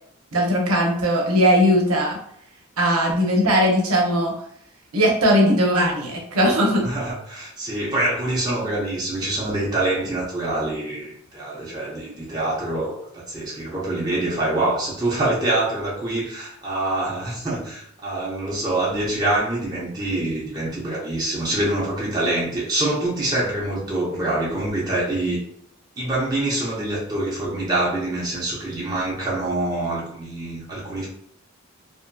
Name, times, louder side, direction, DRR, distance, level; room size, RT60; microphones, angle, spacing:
voice 1, 0.3-2.2 2.8-4.3 4.9-6.9, equal, 85° right, -1 dB, 0.7 m, -19 dB
voice 2, 6.8-25.4 26.0-31.1, right 2 dB, 20° right, -6 dB, 0.6 m, -25 dB
2.7 x 2.7 x 2.2 m, 0.66 s
head